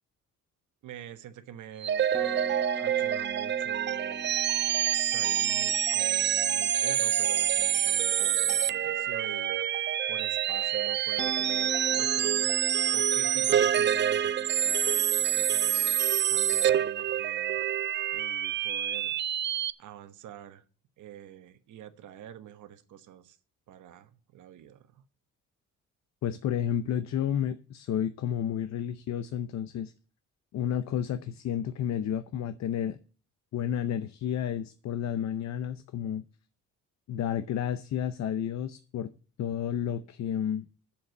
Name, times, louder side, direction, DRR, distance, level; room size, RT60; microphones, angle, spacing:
voice 1, 0.8-4.3 4.9-9.6 10.1-12.5 12.9-16.0 16.3-17.6 18.1-19.2 19.8-20.6 21.0-23.4 23.7-25.0, right 11 dB, 80° right, 1.2 m, -46 dB
sound 1, 1.8-19.7, right 10 dB, 40° right, 0.4 m, -27 dB
sound 2, 2.1-8.8 11.2-16.1, equal, 5° left, 1.3 m, -44 dB
voice 2, 26.2-29.9 30.5-33.0 33.5-36.2 37.1-39.1 39.4-40.7, left 9 dB, 65° left, 0.7 m, -31 dB
7.9 x 7.1 x 8.0 m
cardioid pair, 90°, 30 cm